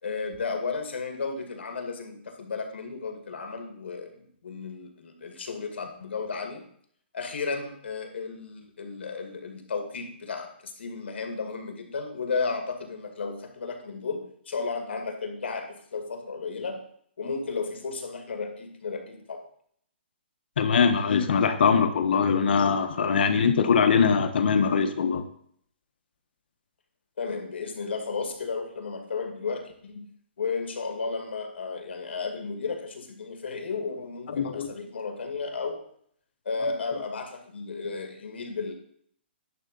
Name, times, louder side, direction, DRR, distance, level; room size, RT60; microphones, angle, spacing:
voice 1, 0.0-6.6 7.1-16.8 17.2-19.4 27.2-30.1 30.4-35.8 36.5-38.7, left 4 dB, 80° left, 4 dB, 2.2 m, -33 dB
voice 2, 20.6-25.2 34.3-34.7, left 6 dB, 60° left, 6 dB, 1.2 m, -22 dB
11.0 x 3.7 x 6.9 m, 0.63 s
hypercardioid pair, 165°, 6 cm